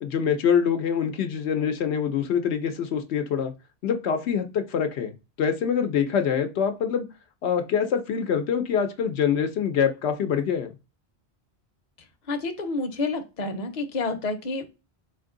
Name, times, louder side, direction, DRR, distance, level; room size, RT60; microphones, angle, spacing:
voice 1, 0.0-3.5 3.8-5.1 5.4-7.1 7.4-10.7, left 7 dB, 90° left, 6 dB, 1.0 m, -25 dB
voice 2, 12.3-14.7, left 3 dB, 45° left, 6 dB, 0.8 m, -29 dB
4.3 x 2.6 x 3.7 m, 0.28 s
omnidirectional pair, 1.1 m